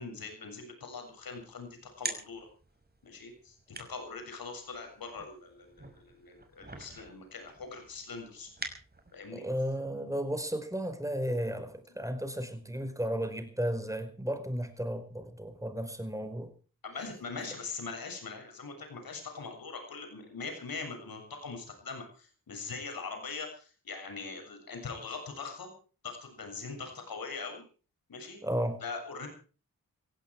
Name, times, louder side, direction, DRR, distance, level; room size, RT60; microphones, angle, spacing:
voice 1, 0.0-2.5 3.0-8.5 9.1-9.5 16.8-25.7 26.0-27.6 28.1-28.4 28.8-29.3, left 4 dB, 80° left, 5 dB, 7.2 m, -42 dB
sound 1, 1.1-9.4, right 2 dB, 25° right, 5.7 m, -46 dB
voice 2, 9.3-16.5 28.4-28.8, equal, 10° right, 9 dB, 4.9 m, -34 dB
18.0 x 16.5 x 4.8 m, 0.39 s
cardioid pair, 65°, 35 cm